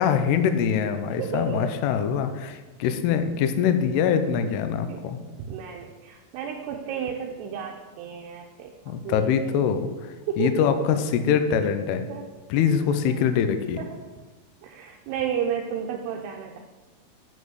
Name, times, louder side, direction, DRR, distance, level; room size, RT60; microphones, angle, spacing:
voice 1, 0.0-5.2 8.9-12.0 12.5-13.8, left 7 dB, 90° left, 8 dB, 2.3 m, -24 dB
voice 2, 1.1-1.7 4.9-5.1 5.5-8.7 9.0-9.2 10.3-10.6 12.1-12.3 13.8-14.0 14.6-16.6, right 7 dB, 80° right, 1 dB, 2.5 m, -32 dB
9.4 x 5.4 x 7.8 m, 1.3 s
omnidirectional pair, 5.5 m